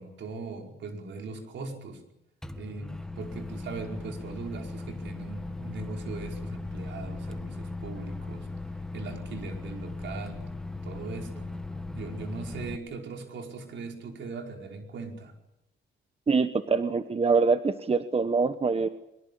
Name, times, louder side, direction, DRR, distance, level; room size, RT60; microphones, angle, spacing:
voice 1, 0.0-2.0 2.6-8.5 8.9-10.4 10.8-11.5 11.9-15.3, right 4 dB, 70° right, 3 dB, 5.1 m, -40 dB
Microwave oven, 2.4-12.8, left 2 dB, 5° left, 1.7 m, -38 dB
voice 2, 16.3-18.9, right 4 dB, 30° right, 11 dB, 1.2 m, -24 dB
22.5 x 22.0 x 8.5 m, 0.87 s
cardioid pair, 90°, 20 cm